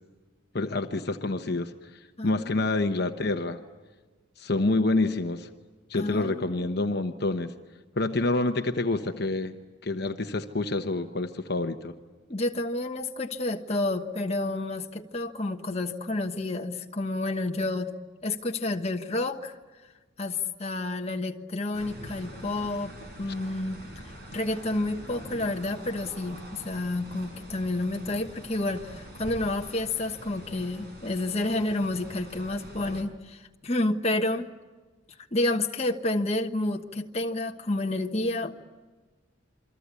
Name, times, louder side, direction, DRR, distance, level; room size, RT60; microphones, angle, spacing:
voice 1, 0.5-3.6 4.4-5.5 5.9-7.5 8.0-9.5 9.8-11.9 23.2-23.3, left 2 dB, 50° left, 6 dB, 1.0 m, -27 dB
voice 2, 2.2-2.6 5.9-6.7 12.3-17.9 18.2-19.6 20.2-23.8 24.3-34.5 35.3-38.6, left 2 dB, 30° left, 3 dB, 1.2 m, -30 dB
sound 1, 21.7-33.0, equal, 50° right, 6.0 m, -45 dB
28.0 x 23.5 x 8.3 m, 1.3 s
head